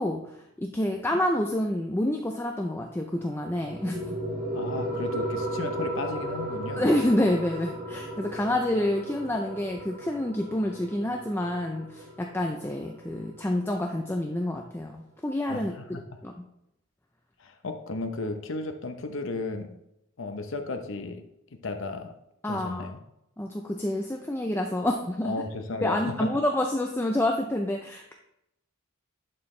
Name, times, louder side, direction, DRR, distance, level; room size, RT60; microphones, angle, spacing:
voice 1, 0.0-4.2 6.8-16.3 22.4-22.9 23.4-25.4 25.8-28.1, left 1 dB, 10° left, 2 dB, 0.4 m, -28 dB
sound 1, 3.1-14.1, right 1 dB, 40° right, 1.7 m, -35 dB
voice 2, 4.5-6.9 15.5-16.0 17.4-19.8 20.2-21.2 21.6-22.1 22.5-23.0 25.2-26.3, left 3 dB, 65° left, 6 dB, 0.7 m, -34 dB
11.0 x 4.5 x 3.2 m, 0.80 s
head